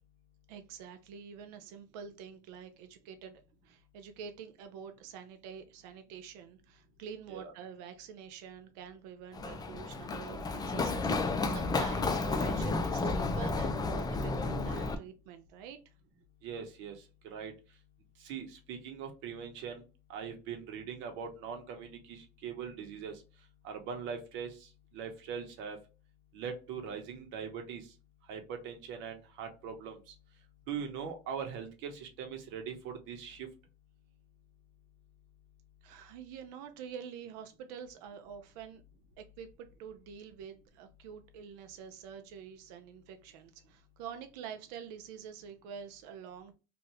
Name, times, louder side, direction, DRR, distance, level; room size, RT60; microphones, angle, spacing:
voice 1, 0.5-15.8 35.8-38.8 39.2-46.5, right 7 dB, 85° right, 7 dB, 0.5 m, -47 dB
Run, 9.3-14.9, left 3 dB, 20° left, 0.4 m, -32 dB
voice 2, 16.4-17.5 18.2-19.8 20.1-23.2 23.6-25.8 26.3-27.9 28.3-30.1 30.7-33.5, right 7 dB, 70° right, 4 dB, 1.0 m, -41 dB
2.7 x 2.5 x 3.1 m, 0.31 s
supercardioid pair, 115°, 20 cm